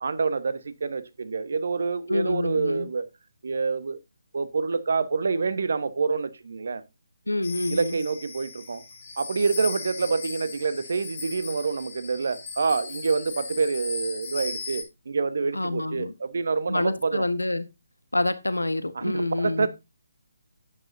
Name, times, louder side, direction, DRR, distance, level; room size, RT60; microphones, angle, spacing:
voice 1, 0.0-3.1 3.4-4.0 4.3-6.8 7.7-8.8 9.2-17.3 18.9-19.7, right 4 dB, 55° right, 1.2 m, -27 dB
voice 2, 2.1-2.9 7.3-8.0 15.5-16.1 16.7-17.7 18.1-19.7, left 2 dB, 85° left, 1.1 m, -27 dB
sound 1, 7.4-14.8, left 4 dB, 35° left, 4.6 m, -37 dB
11.5 x 9.3 x 2.7 m
figure-of-eight pair, 145°, 0 cm